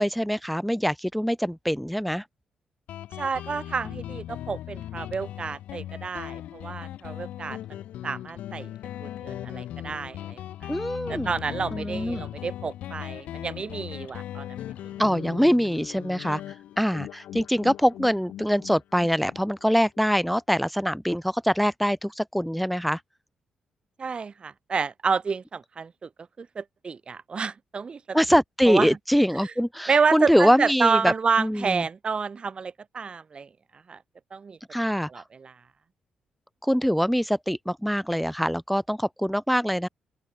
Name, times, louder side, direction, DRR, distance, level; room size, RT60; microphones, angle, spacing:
voice 1, 0.0-2.2 10.7-11.3 11.7-12.2 15.0-23.0 28.1-31.1 31.4-31.8 34.7-35.1 36.6-39.9, equal, ahead, 1.2 m, -24 dB
Guitar, 2.9-20.1, left 12 dB, 75° left, 4.9 m, -38 dB
voice 2, 3.2-7.6 8.0-8.7 9.0-10.7 11.1-14.9 24.0-26.1 26.4-28.2 28.7-29.0 29.4-29.5 29.9-33.5 33.9-34.0 34.3-34.6 35.1-35.5, right 5 dB, 45° right, 4.3 m, -29 dB
open air
hypercardioid pair, 45°, 2 cm